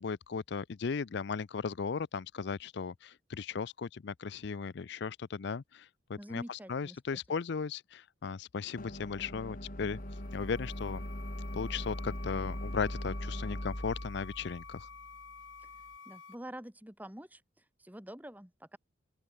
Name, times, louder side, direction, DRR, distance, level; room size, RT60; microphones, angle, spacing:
voice 1, 0.0-10.0 10.3-11.0 11.5-14.9, left 5 dB, 60° left, 0.5 m, -36 dB
voice 2, 6.2-7.2 15.6-15.7 16.1-18.8, equal, 10° right, 2.4 m, -47 dB
sound 1, 8.8-15.9, equal, 45° left, 4.4 m, -41 dB
sound 2, 9.9-16.4, left 5 dB, 75° left, 2.6 m, -51 dB
open air
head